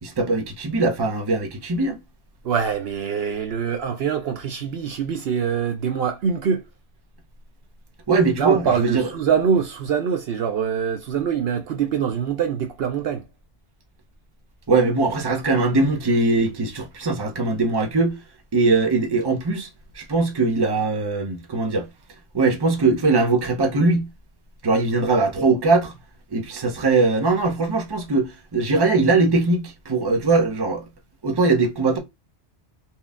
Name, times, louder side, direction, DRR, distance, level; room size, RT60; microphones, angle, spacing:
voice 1, 0.0-2.0 8.1-9.1 14.7-18.2 18.5-19.7 19.9-21.9 22.3-24.1 24.6-25.9 26.3-30.9 31.2-32.0, right 3 dB, 25° right, 0.7 m, -21 dB
voice 2, 2.4-6.6 8.4-13.3, right 7 dB, 65° right, 0.8 m, -24 dB
4.3 x 2.3 x 3.5 m
omnidirectional pair, 1.2 m